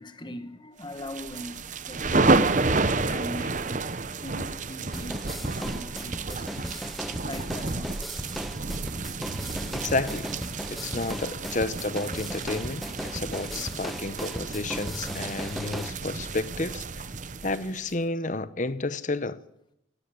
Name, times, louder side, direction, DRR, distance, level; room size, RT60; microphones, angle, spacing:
voice 1, 0.0-2.6 3.0-5.3 5.6-8.0 8.5-8.7 9.1-9.2, left 1 dB, 25° left, 1.4 m, -41 dB
sound 1, 1.0-17.9, right 3 dB, 40° right, 0.8 m, -30 dB
sound 2, 4.9-15.9, equal, ahead, 0.7 m, -37 dB
voice 2, 9.7-10.3 10.7-16.8 17.4-19.4, left 2 dB, 40° left, 0.9 m, -31 dB
16.5 x 16.5 x 9.8 m
head